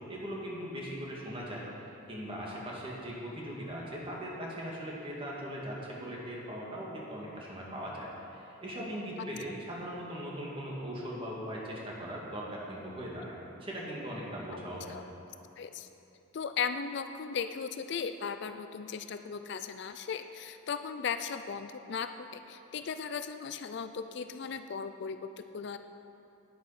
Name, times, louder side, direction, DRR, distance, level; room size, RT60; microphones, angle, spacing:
voice 1, 0.0-1.6 2.1-13.3 13.6-15.0, equal, 25° right, -4 dB, 1.9 m, -39 dB
voice 2, 15.6-15.9 16.3-25.8, left 6 dB, 55° left, 9 dB, 0.4 m, -37 dB
9.5 x 9.2 x 5.7 m, 2.8 s
head